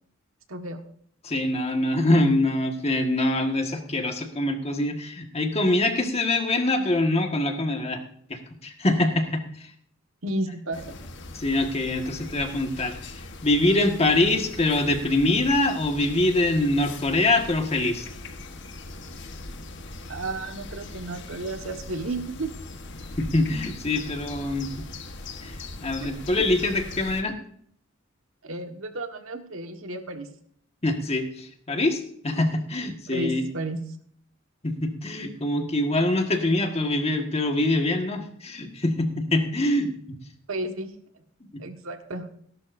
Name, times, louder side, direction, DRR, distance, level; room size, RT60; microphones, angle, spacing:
voice 1, 0.5-0.8 10.2-10.9 20.1-22.5 26.4-26.5 28.4-30.3 33.1-33.8 40.5-40.9 41.6-42.3, right 2 dB, 80° right, 5 dB, 1.5 m, -32 dB
voice 2, 1.2-8.0 8.3-9.7 11.3-13.0 13.4-18.1 23.2-24.9 25.4-27.4 30.8-33.5 34.6-40.2 41.5-41.6, left 2 dB, 30° left, 4 dB, 1.6 m, -24 dB
sound 1, 10.7-27.2, left 2 dB, 60° left, 1.3 m, -40 dB
18.0 x 11.5 x 2.6 m, 0.63 s
head